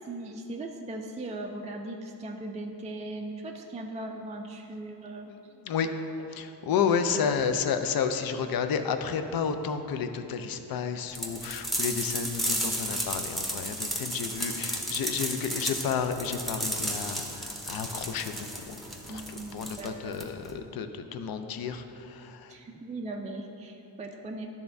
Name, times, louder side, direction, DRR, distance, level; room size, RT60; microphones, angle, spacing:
voice 1, 0.1-5.3 7.1-7.3 19.1-20.1 22.5-24.5, right 2 dB, 20° right, 1 dB, 0.3 m, -38 dB
voice 2, 5.3-5.9 6.3-18.8 19.1-22.5, left 6 dB, 60° left, 8 dB, 0.5 m, -31 dB
sound 1, 11.2-20.5, equal, ahead, 0.8 m, -33 dB
10.0 x 3.5 x 2.6 m, 2.9 s
cardioid pair, 75°, 42 cm